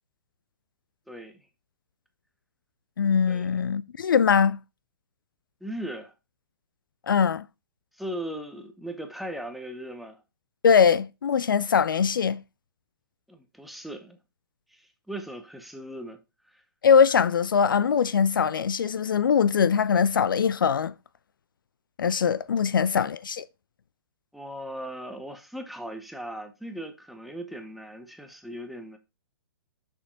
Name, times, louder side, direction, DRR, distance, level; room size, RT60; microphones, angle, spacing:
voice 1, 3.0-4.6 7.1-7.5 10.6-12.4 16.8-20.9 22.0-23.4, left 6 dB, 65° left, 0.4 m, -22 dB
voice 2, 5.6-6.1 8.0-10.2 13.3-14.2 14.7-16.2 16.5-16.6 22.6-22.8 24.3-29.0, right 1 dB, ahead, 0.9 m, -38 dB
6.3 x 5.9 x 4.0 m
figure-of-eight pair, 120°, 12 cm